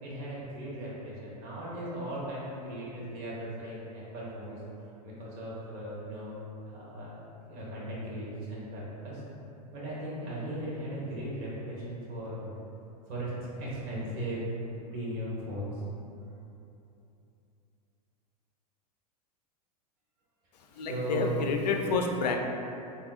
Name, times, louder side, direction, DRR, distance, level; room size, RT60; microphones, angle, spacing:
voice 1, 0.0-4.6 5.0-6.3 6.6-9.2 9.7-12.5 13.1-13.3 13.6-14.6 14.9-15.8 20.7-21.4, right 1 dB, 45° right, -6 dB, 1.2 m, -37 dB
voice 2, 20.6-22.4, left 4 dB, 75° left, 3 dB, 0.4 m, -29 dB
3.6 x 2.8 x 2.4 m, 2.8 s
hypercardioid pair, 105°, 21 cm